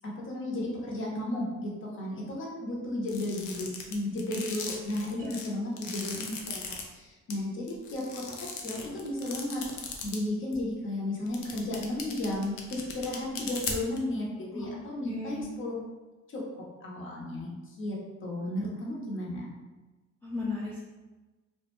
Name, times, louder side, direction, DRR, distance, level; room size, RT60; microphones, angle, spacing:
voice 1, 0.2-8.2 8.6-15.7 16.3-16.4 16.8-18.0 18.2-19.5, left 1 dB, 40° left, -3 dB, 0.8 m, -34 dB
sound 1, 3.1-6.8 7.3-7.4 7.7-10.2 10.5-10.6 11.3-14.0, left 6 dB, 85° left, 0.5 m, -37 dB
voice 2, 15.0-15.4 20.2-20.8, left 3 dB, 5° left, -7 dB, 0.4 m, -35 dB
2.3 x 2.1 x 3.0 m, 1.2 s
cardioid pair, 90°, 30 cm